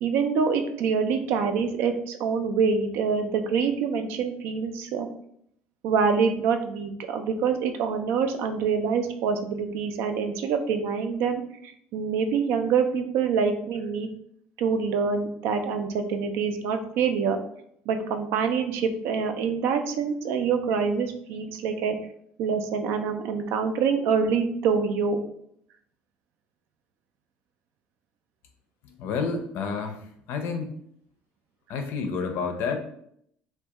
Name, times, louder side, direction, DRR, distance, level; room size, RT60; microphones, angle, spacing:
voice 1, 0.0-5.1 5.8-14.1 14.6-17.4 17.9-22.0 22.4-25.2, right 6 dB, 75° right, 7 dB, 0.3 m, -26 dB
voice 2, 28.8-30.8 31.7-32.8, left 5 dB, 70° left, 6 dB, 0.4 m, -30 dB
2.3 x 2.2 x 2.8 m, 0.70 s
cardioid pair, 115°, 4 cm